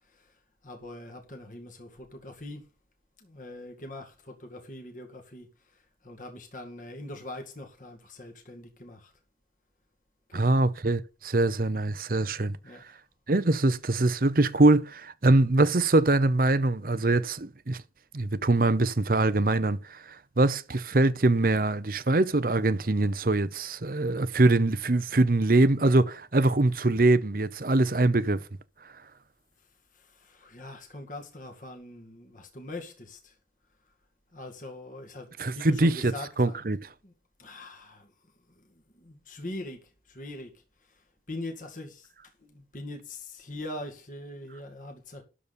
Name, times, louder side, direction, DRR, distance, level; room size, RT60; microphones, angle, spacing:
voice 1, 0.6-2.6 3.2-5.5 5.7-9.1 10.3-10.5 12.6-12.8 29.9-33.4 34.3-36.6 37.0-37.1 37.4-38.1 38.6-38.7 38.9-39.8 40.1-40.6 40.9-41.0 41.3-42.1 42.4-45.2, left 1 dB, 45° left, 2.1 m, -42 dB
voice 2, 10.3-12.6 13.3-17.8 18.1-28.4 35.4-36.9, right 2 dB, 50° right, 0.8 m, -23 dB
12.5 x 4.2 x 6.9 m
head